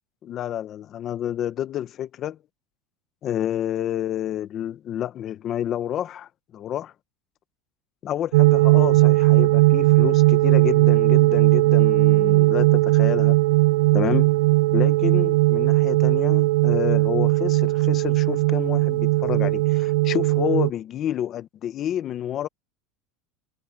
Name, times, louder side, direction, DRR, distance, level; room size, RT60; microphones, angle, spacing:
voice 1, 0.2-2.4 3.2-6.9 8.0-13.4 13.9-14.4 14.7-22.5, left 11 dB, 30° left, 0.9 m, -29 dB
sound 1, 8.3-20.7, right 21 dB, 85° right, 0.5 m, -18 dB
supercardioid pair, 165°, 0 cm